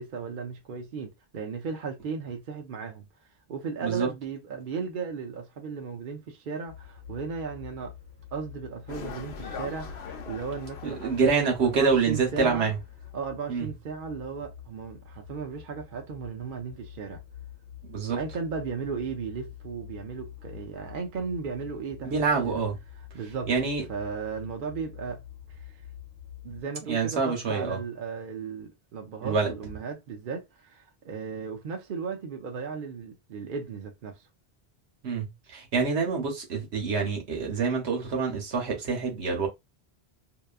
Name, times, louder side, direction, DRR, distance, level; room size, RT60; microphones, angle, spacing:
voice 1, 0.0-3.1 3.5-7.9 8.3-12.7 13.1-17.2 18.1-22.1 22.4-22.5 23.1-23.6 23.9-25.2 26.4-34.3, right 5 dB, 60° right, 0.7 m, -36 dB
sound 1, 6.7-26.6, left 10 dB, 25° right, 1.1 m, -47 dB
sound 2, 8.9-12.8 13.0-13.1, left 5 dB, 80° left, 0.9 m, -42 dB
voice 2, 10.8-12.8 13.5-13.7 17.9-18.2 22.0-22.8 23.5-23.8 26.8-27.8 29.2-29.5 35.0-39.5, right 5 dB, 85° right, 1.2 m, -26 dB
2.8 x 2.3 x 2.3 m
omnidirectional pair, 1.1 m